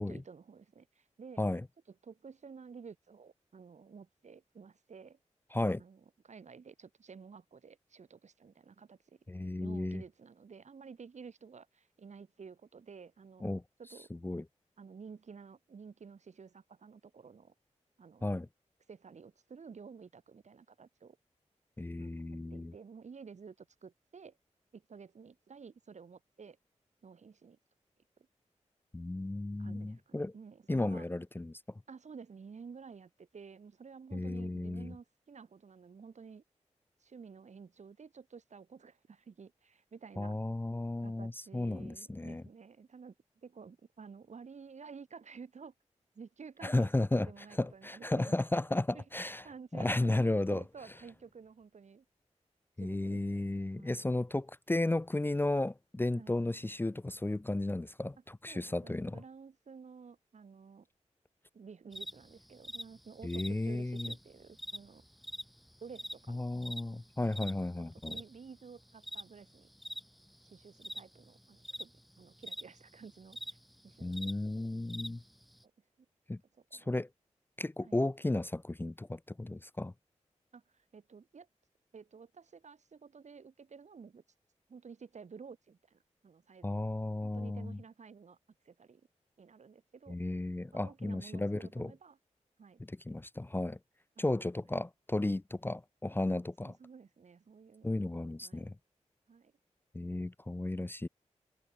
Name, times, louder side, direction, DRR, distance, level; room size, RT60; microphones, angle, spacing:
voice 1, 0.0-1.4 1.9-5.2 5.8-9.3 9.6-14.1 14.8-17.5 18.0-18.3 18.9-21.2 22.0-24.4 24.7-26.6 27.0-27.6 28.2-28.3 29.6-31.0 31.9-36.4 37.0-40.4 41.0-45.7 46.1-48.4 48.9-52.0 52.8-53.5 53.8-54.1 56.1-56.4 58.5-60.9 61.5-65.0 65.8-67.0 67.8-69.7 70.4-73.4 73.8-74.8 76.0-76.1 76.5-76.9 77.8-78.0 80.5-81.5 81.9-84.2 84.7-86.9 87.2-88.4 88.6-89.0 89.4-90.2 90.7-92.2 92.6-92.8 93.1-93.2 94.2-94.3 96.3-98.0 98.4-98.7 99.3-99.5, right 5 dB, 70° right, 2.8 m, -52 dB
voice 2, 5.5-5.8 9.3-10.0 13.4-13.6 14.2-14.4 18.2-18.5 21.8-22.7 28.9-30.3 30.7-31.6 34.1-34.9 40.2-42.4 46.6-47.3 47.6-49.4 49.7-50.6 52.8-59.2 63.2-64.1 66.3-68.2 74.0-75.2 76.3-76.4 76.7-77.1 77.6-79.9 86.6-87.8 90.1-91.9 93.1-93.8 94.2-96.7 97.8-98.7 99.9-101.1, left 2 dB, 15° left, 0.6 m, -34 dB
sound 1, 61.9-75.6, equal, ahead, 1.2 m, -45 dB
cardioid pair, 55°, 12 cm